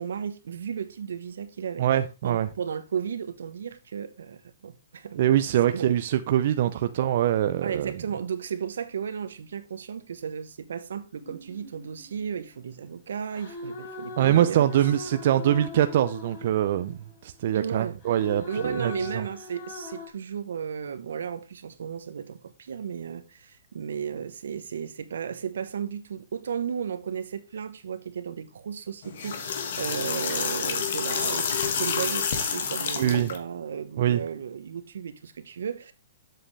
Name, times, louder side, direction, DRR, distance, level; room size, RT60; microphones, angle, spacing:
voice 1, 0.0-1.9 2.2-5.3 5.7-5.9 6.6-6.7 7.6-14.9 17.5-18.0 18.5-35.9, right 7 dB, 85° right, 1.0 m, -34 dB
voice 2, 1.8-2.5 5.2-7.9 14.2-19.2 33.0-33.3 34.0-34.2, right 11 dB, 50° right, 0.5 m, -24 dB
sound 1, 11.2-12.7 13.3-17.1 18.0-20.1, left 3 dB, 40° left, 2.9 m, -41 dB
sound 2, 29.0-33.4, left 6 dB, 60° left, 1.7 m, -28 dB
7.8 x 7.5 x 3.3 m
hypercardioid pair, 160°, 0 cm